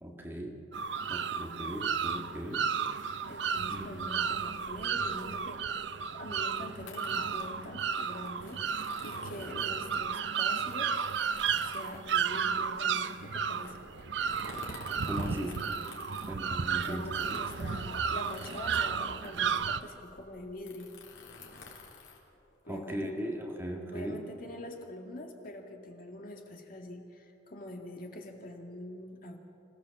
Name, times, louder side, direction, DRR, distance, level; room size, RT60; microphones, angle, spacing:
voice 1, 0.0-0.6 1.1-2.6 3.7-4.2 15.1-15.6 16.2-17.4 22.7-24.2, right 1 dB, 10° right, 0 dB, 1.8 m, -38 dB
sound 1, 0.7-19.8, right 6 dB, 65° right, 0.6 m, -33 dB
voice 2, 3.3-5.9 6.1-8.6 9.0-11.0 11.6-13.8 15.4-15.9 16.7-21.0 22.7-23.2 23.9-29.4, left 1 dB, 50° left, 2 dB, 2.2 m, -44 dB
sound 2, 6.8-22.9, left 3 dB, 85° left, 3.9 m, -50 dB
26.5 x 16.0 x 7.2 m, 2.7 s
head